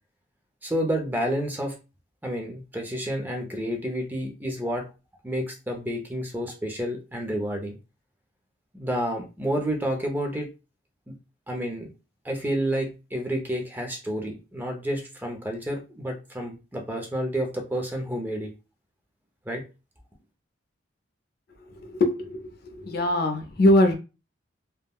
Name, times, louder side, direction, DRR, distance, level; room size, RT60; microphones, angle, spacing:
voice 1, 0.6-1.7 2.2-4.9 5.2-7.8 8.7-10.5 11.1-11.2 11.5-11.9 12.2-18.5 19.5-19.6, equal, 10° right, 2 dB, 0.4 m, -30 dB
voice 2, 21.7-22.4 22.7-23.9, left 1 dB, 50° left, 6 dB, 0.4 m, -22 dB
3.4 x 2.1 x 2.2 m, 0.30 s
head